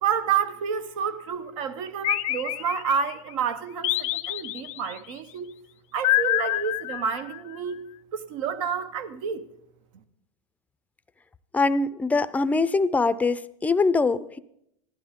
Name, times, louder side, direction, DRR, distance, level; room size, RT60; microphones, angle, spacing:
voice 1, 0.0-5.5 5.9-7.9 8.1-9.5, right 7 dB, 75° right, 1.1 m, -29 dB
sound 1, 2.0-3.2 3.8-5.0 6.0-7.5, left 16 dB, 80° left, 0.6 m, -27 dB
voice 2, 11.5-14.4, left 3 dB, 10° left, 0.4 m, -23 dB
15.0 x 11.5 x 3.6 m
supercardioid pair, 115°, 17 cm